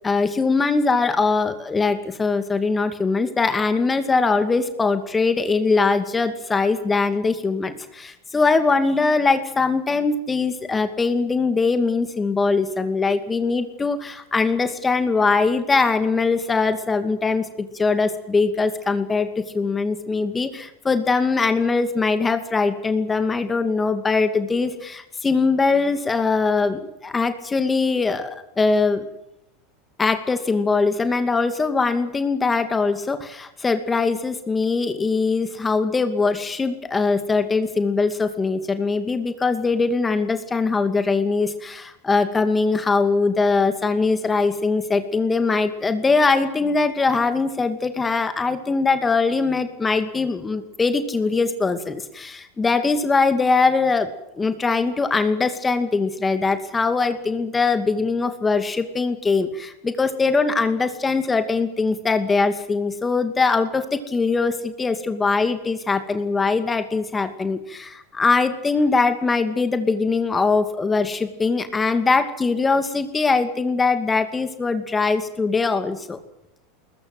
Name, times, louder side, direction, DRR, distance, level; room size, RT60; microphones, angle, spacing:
voice 1, 0.0-29.1 30.0-54.1 54.4-76.2, left 4 dB, 20° left, 8 dB, 2.5 m, -21 dB
22.0 x 21.0 x 7.9 m, 0.84 s
hypercardioid pair, 85°, 0 cm